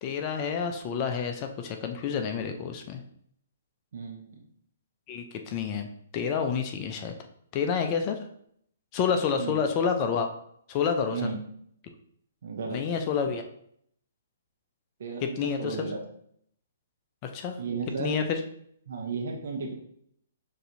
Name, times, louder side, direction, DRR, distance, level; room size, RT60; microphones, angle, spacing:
voice 1, 0.0-3.0 5.1-5.9 6.1-7.1 7.5-8.2 8.9-10.3 10.7-11.2 12.7-13.4 15.2-15.8 17.2-17.6 18.0-18.4, left 6 dB, 35° left, 5 dB, 0.5 m, -28 dB
voice 2, 3.9-4.4 9.4-9.6 11.1-11.4 12.4-12.8 15.0-16.0 17.6-18.2 18.9-19.7, right 4 dB, 60° right, 1 dB, 0.8 m, -34 dB
6.5 x 2.7 x 2.7 m, 0.68 s
figure-of-eight pair, 125°, 0 cm